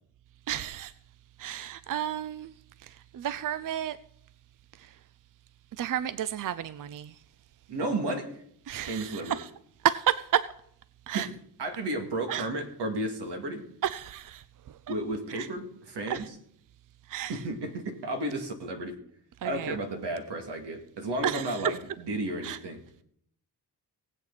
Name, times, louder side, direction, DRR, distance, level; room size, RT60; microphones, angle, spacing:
voice 1, 0.5-0.9 1.4-2.5 2.8-4.0 4.8-4.9 5.8-7.1 8.7-9.5 9.8-10.5 11.1-11.3 12.3-12.5 13.8-14.4 15.4-15.5 16.1-16.2 17.1-17.4 19.4-19.8 21.2-21.6 22.4-22.6, right 10 dB, 55° right, 0.5 m, -31 dB
voice 2, 7.7-8.4 8.9-9.4 11.1-11.3 11.6-13.7 14.9-16.4 17.3-19.0 19.4-22.8, right 1 dB, 85° right, 2.4 m, -33 dB
18.5 x 8.5 x 4.1 m
wide cardioid pair, 125°, 40 cm